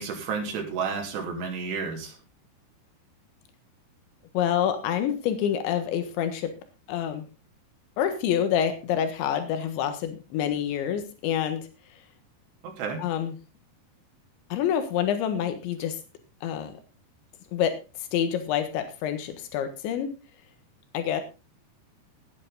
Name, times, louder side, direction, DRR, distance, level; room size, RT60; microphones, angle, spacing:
voice 1, 0.0-2.2 12.6-13.0, right 5 dB, 70° right, 3 dB, 5.2 m, -31 dB
voice 2, 4.3-6.5 6.9-7.3 8.0-11.7 13.0-13.3 14.5-16.0 16.4-16.7 17.5-17.8 18.1-20.1 20.9-21.2, left 9 dB, 90° left, 8 dB, 3.9 m, -27 dB
17.0 x 10.0 x 4.0 m, 0.29 s
omnidirectional pair, 5.1 m